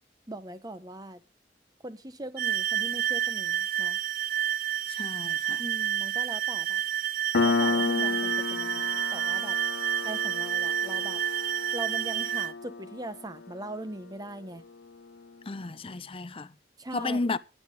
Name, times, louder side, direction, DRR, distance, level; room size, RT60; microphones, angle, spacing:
voice 1, 0.3-1.2 1.8-4.0 5.6-6.8 7.4-9.6 10.0-11.2 11.7-14.6 16.8-17.2, right 1 dB, 20° right, 1.1 m, -40 dB
sound 1, 2.4-12.5, right 11 dB, 55° right, 0.6 m, -29 dB
voice 2, 4.9-5.6 15.5-16.5 16.9-17.4, left 3 dB, 30° left, 0.7 m, -32 dB
Piano, 7.3-14.5, left 4 dB, 70° left, 0.6 m, -32 dB
19.0 x 8.7 x 3.8 m
head